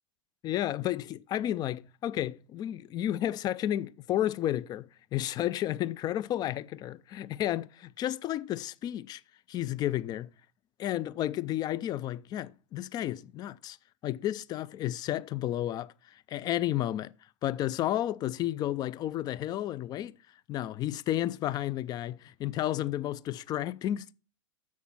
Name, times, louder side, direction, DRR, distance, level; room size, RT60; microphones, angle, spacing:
voice 1, 0.4-9.2 9.5-10.3 10.8-13.8 14.0-17.1 17.4-20.1 20.5-24.1, left 13 dB, 25° left, 0.4 m, -32 dB
7.2 x 6.4 x 5.6 m
figure-of-eight pair, 95°, 17 cm